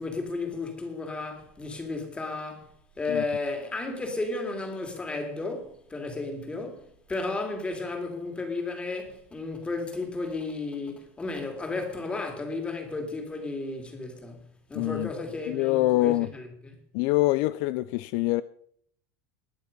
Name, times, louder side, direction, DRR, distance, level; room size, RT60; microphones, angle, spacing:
voice 1, 0.0-14.4 14.7-16.8, left 3 dB, 10° left, 2.7 m, -33 dB
voice 2, 14.7-15.1 15.5-16.3 16.9-18.4, left 17 dB, 55° left, 0.5 m, -25 dB
20.0 x 7.1 x 5.3 m
supercardioid pair, 155°, 9 cm